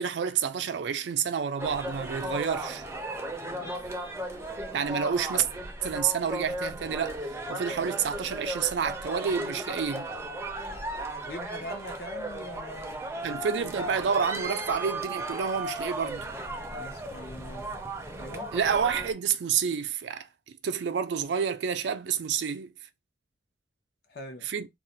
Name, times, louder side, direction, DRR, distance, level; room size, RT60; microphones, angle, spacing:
voice 1, 0.0-2.8 4.7-5.4 5.8-10.1 13.2-16.3 18.5-20.3 20.6-22.7 24.5-24.7, right 7 dB, 75° right, 0.4 m, -29 dB
sound 1, 1.6-19.1, right 1 dB, 15° right, 0.4 m, -36 dB
voice 2, 3.5-3.9 11.2-13.4 16.7-17.7 18.1-18.5 24.1-24.5, left 1 dB, 65° left, 0.7 m, -42 dB
2.4 x 2.1 x 3.8 m
head